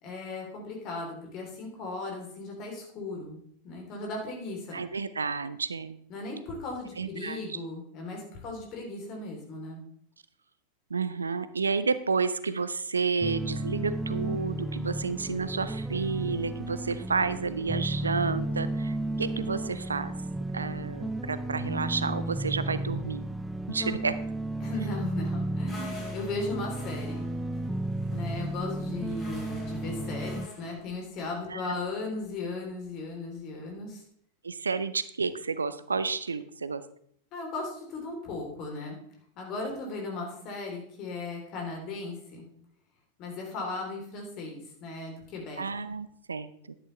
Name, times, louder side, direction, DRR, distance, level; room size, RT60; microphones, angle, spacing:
voice 1, 0.0-3.4 3.6-4.8 6.1-9.8 23.8-24.0 24.6-27.3 28.1-34.0 37.3-39.0 39.4-42.5 43.2-45.6, left 3 dB, 40° left, 0 dB, 3.7 m, -37 dB
voice 2, 4.7-6.0 7.0-7.6 10.9-20.1 20.5-23.2 23.7-24.1 24.8-24.9 31.5-31.7 34.4-36.8 45.6-46.7, right 5 dB, 75° right, 14 dB, 0.5 m, -31 dB
sound 1, 13.2-30.5, right 1 dB, 5° right, 0.4 m, -33 dB
sound 2, 25.7-30.8, left 2 dB, 15° left, 5.3 m, -47 dB
11.0 x 9.9 x 3.4 m, 0.65 s
figure-of-eight pair, 90°, 0 cm